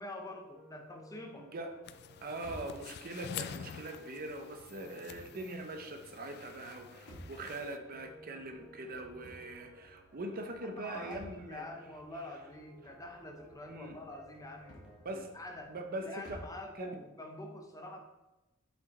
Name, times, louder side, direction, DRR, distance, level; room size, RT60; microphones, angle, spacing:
voice 1, 0.0-1.5 10.5-18.0, left 1 dB, 15° left, 3 dB, 0.7 m, -46 dB
sound 1, 0.5-15.6, equal, 5° right, 1.4 m, -59 dB
voice 2, 1.4-1.7 2.2-11.6 13.7-14.0 15.0-15.3 15.7-16.4 16.8-16.9, right 2 dB, 45° right, 5 dB, 0.7 m, -42 dB
sound 2, 1.8-7.8, left 8 dB, 50° left, 0.3 m, -48 dB
sound 3, 2.3-16.7, equal, 80° left, 1.9 m, -56 dB
5.6 x 4.8 x 4.1 m, 1.0 s
head